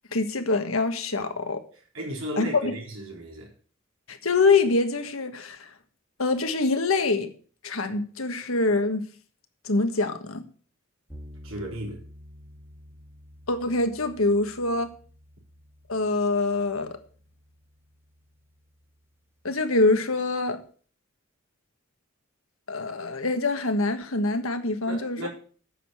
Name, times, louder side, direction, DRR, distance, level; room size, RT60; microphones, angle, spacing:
voice 1, 0.1-1.6 2.4-2.7 4.1-5.7 6.2-7.3 7.6-9.0 9.6-10.4 13.5-14.9 15.9-16.9 19.4-20.6 22.7-25.3, left 3 dB, 85° left, 1.5 m, -25 dB
voice 2, 1.7-3.5 11.4-12.0 24.9-25.3, right 1 dB, 75° right, 3.9 m, -35 dB
sound 1, 11.1-19.3, equal, 10° right, 2.4 m, -50 dB
9.0 x 6.6 x 7.6 m
head